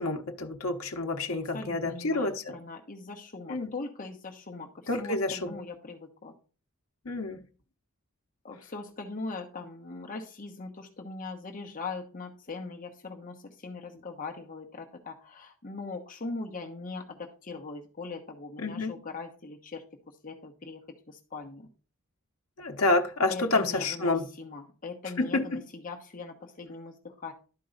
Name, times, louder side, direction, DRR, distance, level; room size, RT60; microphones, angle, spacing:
voice 1, 0.0-2.6 3.5-3.7 4.9-5.6 7.0-7.4 18.6-18.9 22.6-24.2 25.2-25.6, left 2 dB, 65° left, 1.0 m, -28 dB
voice 2, 1.5-6.3 8.4-21.7 23.3-27.3, left 3 dB, 40° left, 1.1 m, -41 dB
11.5 x 4.6 x 3.9 m
head